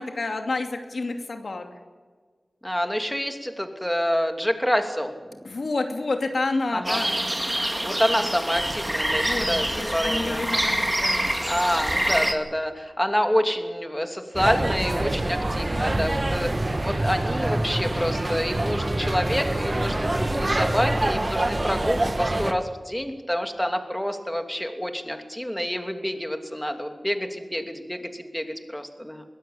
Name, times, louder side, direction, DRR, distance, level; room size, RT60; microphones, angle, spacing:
voice 1, 0.0-1.7 5.4-7.2 9.1-11.2 15.8-16.1, left 3 dB, 80° left, 5 dB, 2.6 m, -29 dB
voice 2, 2.6-5.1 6.7-7.0 7.8-9.7 9.9-10.5 11.5-29.2, equal, 10° left, 5 dB, 2.8 m, -27 dB
sound 1, 6.8-12.3, right 1 dB, 15° right, 2.3 m, -26 dB
sound 2, 14.3-22.5, right 1 dB, 40° right, 1.6 m, -25 dB
22.5 x 16.0 x 8.6 m, 1.5 s
wide cardioid pair, 55°, 0 cm